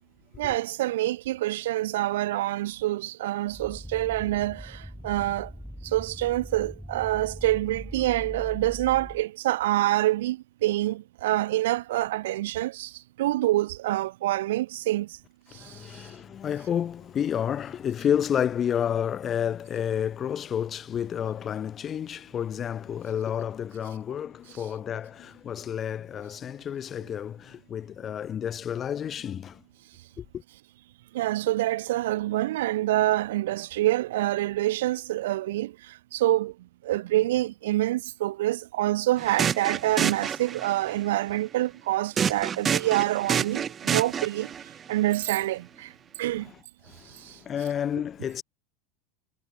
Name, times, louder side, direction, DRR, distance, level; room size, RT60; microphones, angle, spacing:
voice 1, 0.4-5.5 5.8-15.2 15.5-16.1 31.1-36.6 36.8-44.5 44.9-45.9 46.2-46.5 47.1-47.4, right 15 dB, 75° right, 0.3 m, -26 dB
sound 1, 3.5-9.2, equal, ahead, 1.0 m, -41 dB
voice 2, 15.5-29.6 30.2-30.4 46.9-48.4, left 9 dB, 35° left, 1.2 m, -30 dB
sound 2, 39.2-40.9 42.2-44.6, right 8 dB, 30° right, 0.6 m, -28 dB
hypercardioid pair, 100°, 0 cm